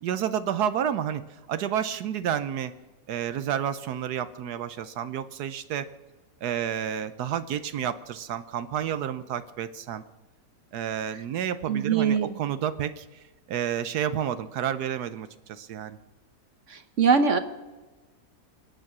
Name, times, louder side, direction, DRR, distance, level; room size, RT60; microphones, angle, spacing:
voice 1, 0.0-2.7 3.1-5.9 6.4-10.0 10.7-16.0, right 9 dB, 75° right, 12 dB, 1.2 m, -30 dB
voice 2, 11.7-12.4 16.7-17.4, right 6 dB, 55° right, 10 dB, 1.1 m, -22 dB
24.5 x 9.2 x 6.0 m, 1.2 s
omnidirectional pair, 1.7 m